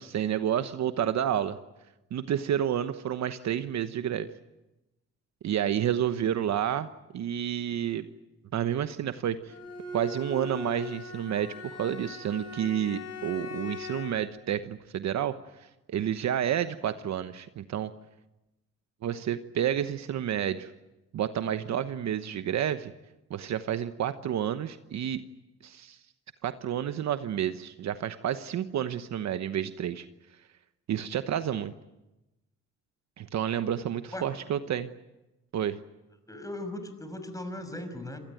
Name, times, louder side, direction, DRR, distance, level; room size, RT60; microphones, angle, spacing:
voice 1, 0.0-1.6 2.1-4.3 5.4-6.9 7.1-8.1 8.5-9.5 9.9-15.3 15.9-17.9 19.0-20.7 21.1-22.9 23.3-25.2 25.6-26.0 26.4-30.0 30.9-31.7 33.2-34.9 35.5-35.8, right 10 dB, 65° right, 10 dB, 1.1 m, -30 dB
Bowed string instrument, 9.5-14.3, left 3 dB, 55° left, 6.7 m, -40 dB
voice 2, 36.3-38.2, left 1 dB, 10° left, 8 dB, 5.7 m, -38 dB
27.0 x 19.0 x 9.2 m, 0.99 s
cardioid pair, 90°, 30 cm